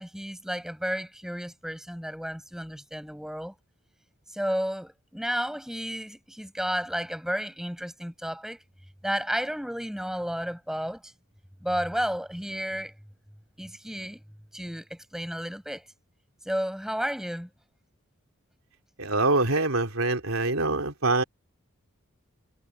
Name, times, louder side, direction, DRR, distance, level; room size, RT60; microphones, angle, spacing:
voice 1, 0.0-3.5 4.3-8.6 9.0-11.1 11.6-12.9 13.6-14.2 14.5-15.8 16.4-17.5, equal, ahead, 7.1 m, -32 dB
voice 2, 19.0-21.2, right 2 dB, 80° right, 3.4 m, -24 dB
head